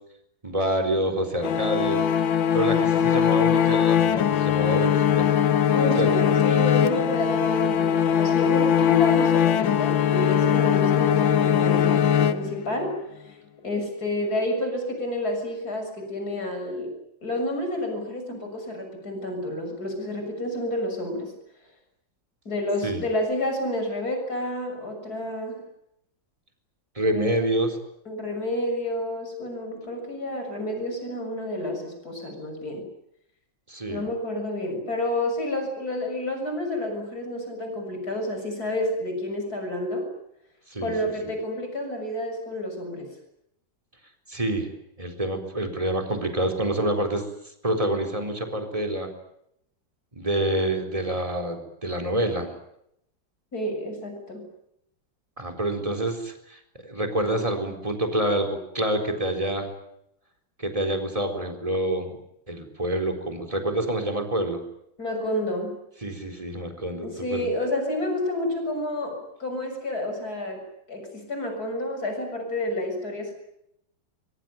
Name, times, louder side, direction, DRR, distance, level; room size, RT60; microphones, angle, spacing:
voice 1, 0.4-2.1 2.5-5.3 6.0-6.1 22.8-23.0 27.0-27.8 33.7-34.1 40.7-40.9 44.3-44.7 45.0-47.2 47.6-49.1 50.1-52.5 55.4-59.7 60.6-62.2 62.5-64.6 66.0-67.5, right 1 dB, 15° right, 4 dB, 4.2 m, -27 dB
sound 1, 1.4-12.9, left 8 dB, 80° left, 1.9 m, -21 dB
voice 2, 5.7-13.0 13.3-13.4 13.6-17.0 17.2-21.3 22.5-25.6 27.0-27.5 28.1-32.9 33.9-40.1 40.8-43.1 53.5-54.5 65.0-65.8 67.0-73.3, left 1 dB, 50° left, 5 dB, 7.4 m, -29 dB
24.0 x 23.5 x 9.2 m, 0.77 s
omnidirectional pair, 2.1 m